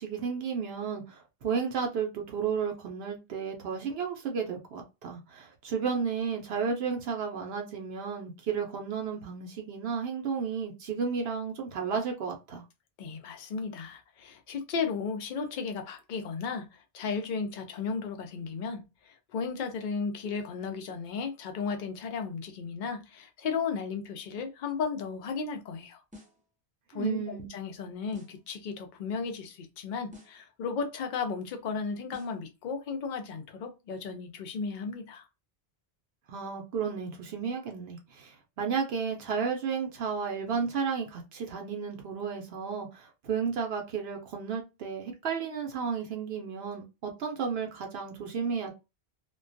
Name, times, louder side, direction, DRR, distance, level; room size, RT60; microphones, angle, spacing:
voice 1, 0.0-12.6 26.9-27.5 36.3-48.7, right 6 dB, 70° right, 0.8 m, -33 dB
voice 2, 13.0-26.0 26.9-35.3, left 5 dB, 60° left, 0.6 m, -35 dB
sound 1, 26.1-26.5 28.1-28.5 30.1-30.5 32.1-32.5, left 2 dB, 10° right, 0.4 m, -51 dB
2.2 x 2.2 x 2.5 m
omnidirectional pair, 1.1 m